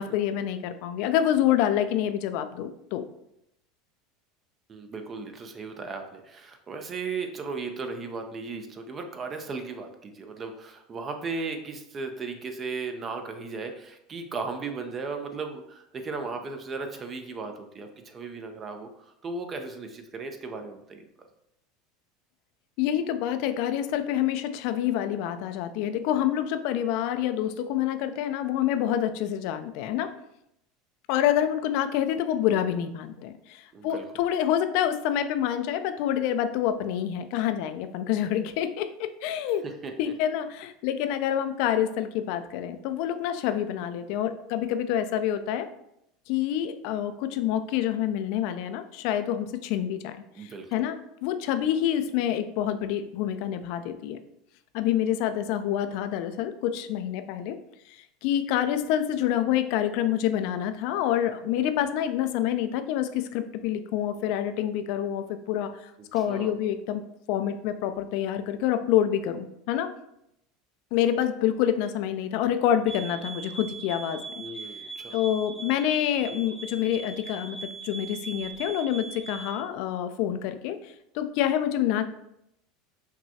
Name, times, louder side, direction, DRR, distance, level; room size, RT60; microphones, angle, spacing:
voice 1, 0.0-3.0 22.8-30.1 31.1-39.6 40.0-45.7 46.3-54.2 54.7-57.6 57.9-67.0 67.3-69.9 70.9-74.2 75.1-82.0, left 10 dB, 60° left, 9 dB, 0.4 m, -27 dB
voice 2, 4.7-18.9 19.2-21.0 33.7-34.0 39.8-40.1 50.4-50.7 66.3-66.5 74.4-75.2, right 4 dB, 35° right, 6 dB, 0.6 m, -36 dB
sound 1, 72.9-79.6, right 4 dB, 25° left, 0.7 m, -40 dB
5.8 x 2.2 x 2.8 m, 0.79 s
hypercardioid pair, 85°, 0 cm